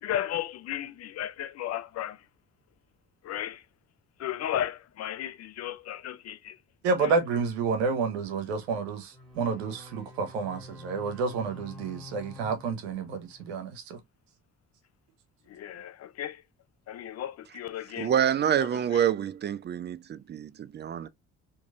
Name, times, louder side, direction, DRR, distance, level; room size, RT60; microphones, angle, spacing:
voice 1, 0.0-2.2 3.2-3.6 4.2-6.6 7.0-7.1 15.5-16.4 16.9-18.1 18.6-19.1, left 11 dB, 50° left, 0.6 m, -35 dB
voice 2, 6.8-14.0, right 4 dB, 90° right, 0.8 m, -30 dB
sound 1, 9.1-13.6, left 2 dB, ahead, 2.0 m, -48 dB
voice 3, 18.0-21.1, right 9 dB, 35° right, 0.5 m, -27 dB
3.0 x 2.6 x 2.3 m
hypercardioid pair, 55°, 32 cm